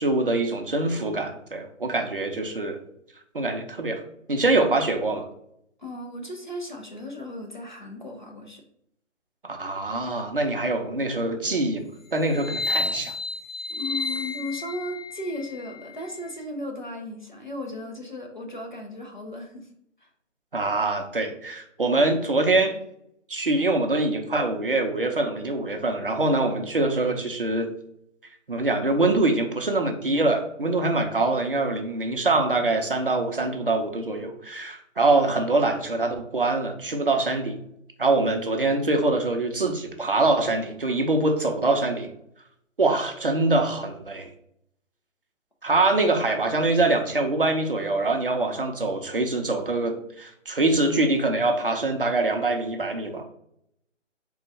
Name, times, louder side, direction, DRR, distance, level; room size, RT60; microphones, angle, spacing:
voice 1, 0.0-2.8 3.3-4.0 4.3-5.3 9.4-11.8 12.1-13.1 20.5-22.8 23.3-27.7 28.5-37.6 38.0-42.1 42.8-44.3 45.6-53.2, right 2 dB, 45° right, 4 dB, 0.6 m, -24 dB
voice 2, 5.8-8.6 13.7-19.7 20.0-20.1, left 1 dB, 40° left, 1 dB, 0.6 m, -35 dB
sound 1, 12.3-16.4, left 3 dB, 85° left, 1.3 m, -32 dB
3.8 x 2.4 x 4.1 m, 0.74 s
hypercardioid pair, 175°, 38 cm